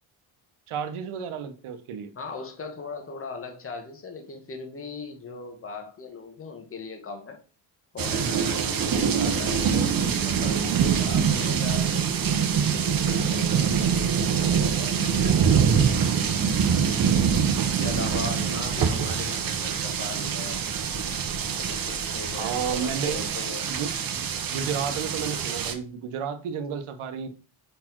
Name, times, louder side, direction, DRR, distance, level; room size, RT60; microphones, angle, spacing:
voice 1, 0.7-2.1 18.5-18.6 22.3-23.2 23.6-24.0 24.5-27.3, right 7 dB, 75° right, 1.1 m, -31 dB
voice 2, 2.1-7.4 7.9-15.9 17.6-20.6 21.6-23.7, left 4 dB, 25° left, 1.1 m, -39 dB
sound 1, 8.0-25.7, right 7 dB, 45° right, 0.8 m, -24 dB
5.4 x 4.3 x 4.5 m
wide cardioid pair, 170°, 50 cm